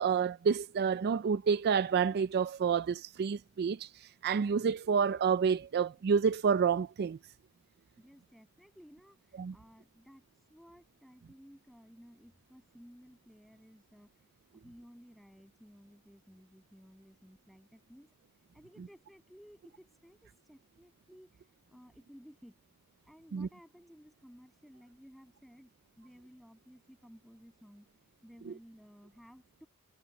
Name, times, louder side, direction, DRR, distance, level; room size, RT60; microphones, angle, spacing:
voice 1, 0.0-3.9 4.2-7.2 9.4-9.5 23.3-23.5, right 6 dB, 50° right, 0.4 m, -29 dB
voice 2, 8.0-14.3 14.5-18.1 18.5-22.6 23.0-27.9 28.2-29.7, equal, ahead, 7.6 m, -57 dB
head